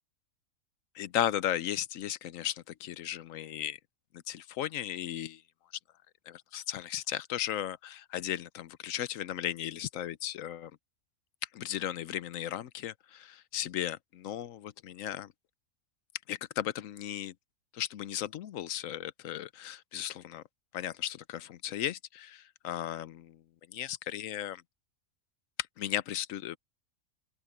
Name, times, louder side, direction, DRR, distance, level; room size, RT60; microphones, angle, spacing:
voice 1, 1.0-3.8 4.3-5.4 6.3-10.7 11.5-15.3 16.3-17.3 17.7-20.4 20.7-23.4 23.7-24.6 25.8-26.6, left 11 dB, 75° left, 1.1 m, -36 dB
omnidirectional pair, 1.4 m